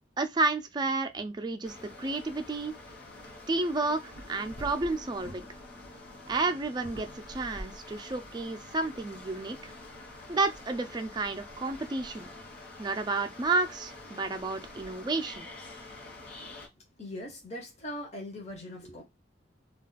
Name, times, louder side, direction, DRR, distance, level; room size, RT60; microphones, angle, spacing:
voice 1, 0.2-2.7 3.5-5.5 6.3-9.7 10.3-12.3 12.8-15.5, right 3 dB, 25° right, 0.4 m, -31 dB
sound 1, 1.6-16.7, left 2 dB, 60° left, 1.0 m, -46 dB
voice 2, 17.0-19.0, left 1 dB, 40° left, 0.7 m, -40 dB
2.3 x 2.3 x 3.9 m
head